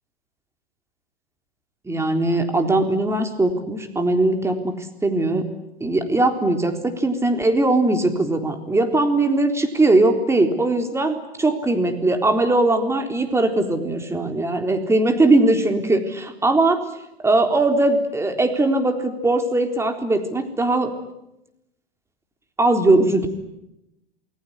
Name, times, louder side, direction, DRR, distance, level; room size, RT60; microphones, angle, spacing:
voice 1, 1.9-4.8 5.0-5.4 5.8-16.8 17.2-20.9 22.6-23.3, right 2 dB, 10° right, 6 dB, 3.8 m, -20 dB
28.5 x 21.5 x 9.7 m, 0.87 s
hypercardioid pair, 110°, 31 cm